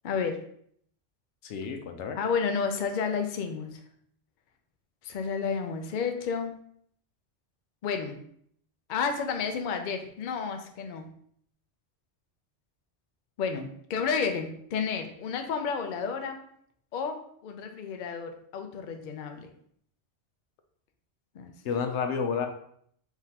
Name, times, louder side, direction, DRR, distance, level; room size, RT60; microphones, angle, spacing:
voice 1, 0.0-0.4 2.1-3.8 5.0-6.5 7.8-8.2 8.9-11.1 13.4-16.4 16.9-19.5 21.3-21.5, left 5 dB, 55° left, 5 dB, 0.6 m, -31 dB
voice 2, 1.4-2.2 21.6-22.5, left 6 dB, 90° left, 6 dB, 0.9 m, -30 dB
3.7 x 3.5 x 2.8 m, 0.66 s
omnidirectional pair, 1.1 m